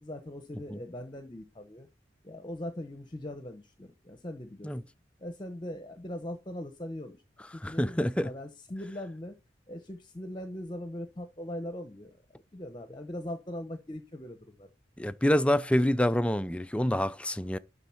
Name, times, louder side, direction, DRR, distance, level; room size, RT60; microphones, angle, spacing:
voice 1, 0.0-1.9 2.2-4.7 5.2-7.2 7.5-9.3 9.7-14.7, left 1 dB, 25° left, 0.9 m, -40 dB
voice 2, 7.6-8.3 15.0-17.6, equal, 5° left, 0.4 m, -26 dB
11.5 x 4.0 x 5.8 m
head